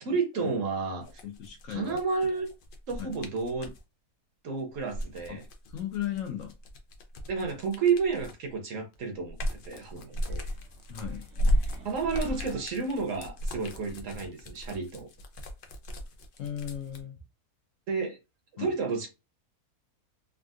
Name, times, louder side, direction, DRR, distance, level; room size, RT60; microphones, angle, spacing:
voice 1, 0.0-1.1 1.7-2.5 2.9-3.7 4.4-5.4 7.3-10.4 11.8-15.1 17.9-18.2 18.5-19.1, right 5 dB, 65° right, 1.0 m, -31 dB
sound 1, 1.0-3.8 4.7-8.5 8.9-17.0, equal, 85° left, 0.4 m, -35 dB
voice 2, 1.2-2.0 3.0-3.1 5.3-5.4 5.7-6.5 10.9-11.3 16.4-17.2 18.6-18.7, left 11 dB, 65° left, 0.9 m, -36 dB
sound 2, 10.1-13.4, left 1 dB, 80° right, 1.6 m, -48 dB
3.6 x 2.4 x 2.4 m
omnidirectional pair, 1.6 m